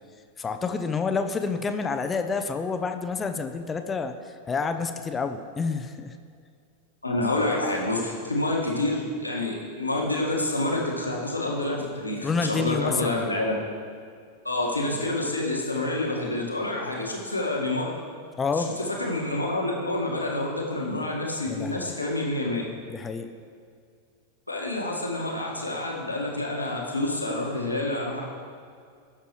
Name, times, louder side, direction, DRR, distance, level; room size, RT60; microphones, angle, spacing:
voice 1, 0.4-6.2 12.2-13.2 18.4-18.7 21.5-21.9 22.9-23.3, left 4 dB, 20° left, 7 dB, 0.6 m, -28 dB
voice 2, 7.0-13.5 14.4-17.9 18.5-22.6 24.5-28.2, left 2 dB, 85° left, -2 dB, 1.7 m, -28 dB
17.5 x 6.8 x 3.1 m, 2.2 s
figure-of-eight pair, 90°, 0 cm